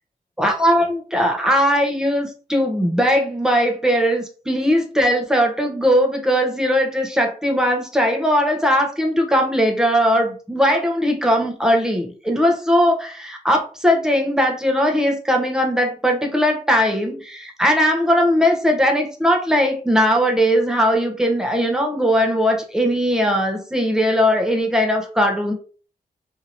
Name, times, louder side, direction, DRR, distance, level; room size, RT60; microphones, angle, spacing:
voice 1, 0.4-25.5, equal, 5° right, 2 dB, 0.7 m, -19 dB
2.9 x 2.7 x 2.7 m, 0.39 s
wide cardioid pair, 110°, 16 cm